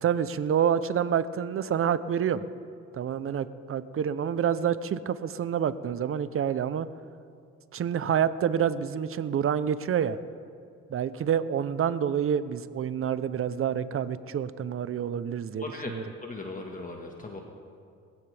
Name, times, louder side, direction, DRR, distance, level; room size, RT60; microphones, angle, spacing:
voice 1, 0.0-2.4 2.9-6.9 7.7-10.2 10.9-16.0, right 8 dB, 45° right, 14 dB, 0.7 m, -28 dB
voice 2, 15.6-17.4, left 2 dB, 25° left, 1 dB, 1.6 m, -38 dB
21.0 x 16.0 x 3.4 m, 2.3 s
cardioid pair, 90°, 30 cm